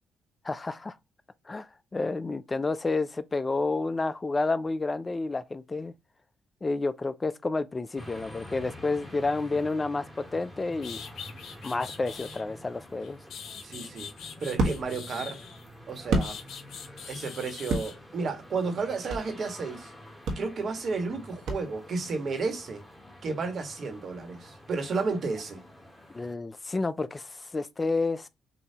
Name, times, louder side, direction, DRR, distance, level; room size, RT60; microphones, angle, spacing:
voice 1, 0.4-1.0 1.5-5.9 6.6-11.0 11.6-13.2 26.1-28.3, left 3 dB, 25° left, 0.3 m, -30 dB
sound 1, 8.0-26.3, left 1 dB, 5° left, 1.9 m, -48 dB
sound 2, 10.4-10.5 10.8-12.4 13.0-15.7 16.2-18.0, left 7 dB, 70° left, 0.9 m, -43 dB
sound 3, 13.5-16.9 17.2-19.4 19.8-19.9 20.2-22.1, right 2 dB, 75° right, 1.4 m, -32 dB
voice 2, 13.6-14.1 14.4-15.4 15.9-16.4 17.1-19.9 20.3-22.8 23.2-25.6, right 4 dB, 55° right, 1.6 m, -32 dB
6.8 x 2.7 x 2.9 m
cardioid pair, 90°, 0 cm